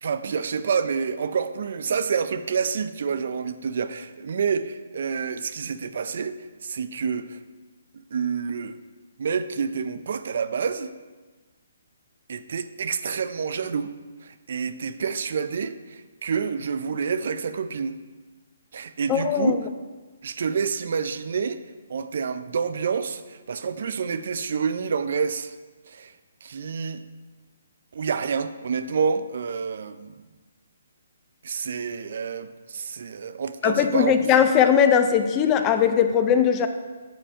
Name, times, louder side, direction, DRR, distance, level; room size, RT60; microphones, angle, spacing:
voice 1, 0.0-7.4 8.1-8.8 9.2-10.9 12.3-13.9 14.2-18.0 18.7-19.6 20.2-21.6 21.9-25.5 25.9-26.1 26.4-27.0 27.9-30.1 31.4-34.1, right 6 dB, 60° right, 12 dB, 0.4 m, -28 dB
voice 2, 19.1-19.6 33.6-36.7, left 8 dB, 20° left, 8 dB, 0.4 m, -19 dB
7.7 x 4.9 x 5.5 m, 1.3 s
hypercardioid pair, 160°, 0 cm